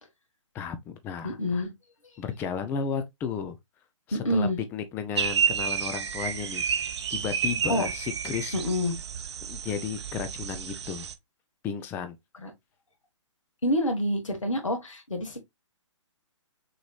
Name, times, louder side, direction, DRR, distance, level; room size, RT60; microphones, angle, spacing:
voice 1, 0.5-1.6 2.2-3.6 4.1-8.6 9.5-11.1 11.6-12.2, left 7 dB, 15° left, 0.4 m, -34 dB
voice 2, 1.2-1.7 4.1-4.6 7.7-7.9 8.5-9.0 12.4-12.5 13.6-15.4, left 1 dB, 80° left, 1.7 m, -27 dB
sound 1, 5.2-11.1, right 7 dB, 60° right, 0.8 m, -30 dB
6.3 x 3.0 x 2.3 m
figure-of-eight pair, 130°, 16 cm